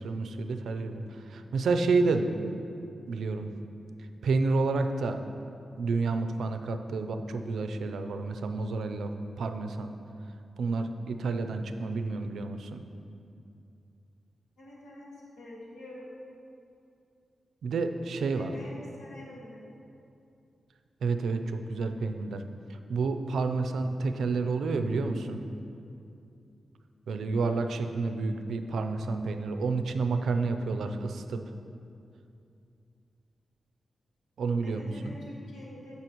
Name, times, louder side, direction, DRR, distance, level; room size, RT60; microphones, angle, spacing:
voice 1, 0.0-2.3 3.1-3.5 4.2-5.2 5.8-9.9 10.6-12.8 17.6-18.5 21.0-22.4 22.7-25.4 27.1-31.4 34.4-35.2, right 3 dB, 85° right, 7 dB, 0.5 m, -30 dB
voice 2, 14.6-16.1 18.3-19.7 34.6-35.9, left 1 dB, 90° left, -5 dB, 1.9 m, -47 dB
14.5 x 5.5 x 3.0 m, 2.6 s
cardioid pair, 60°, 0 cm